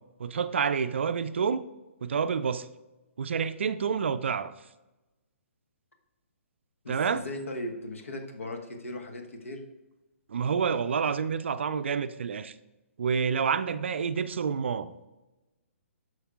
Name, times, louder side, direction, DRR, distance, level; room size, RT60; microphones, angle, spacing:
voice 1, 0.2-1.6 2.0-2.7 3.2-4.5 6.9-7.2 10.3-12.5 13.0-14.9, right 6 dB, 55° right, 0.4 m, -28 dB
voice 2, 6.8-9.6, left 1 dB, 65° left, 1.2 m, -38 dB
11.0 x 6.3 x 2.5 m
figure-of-eight pair, 130°, 8 cm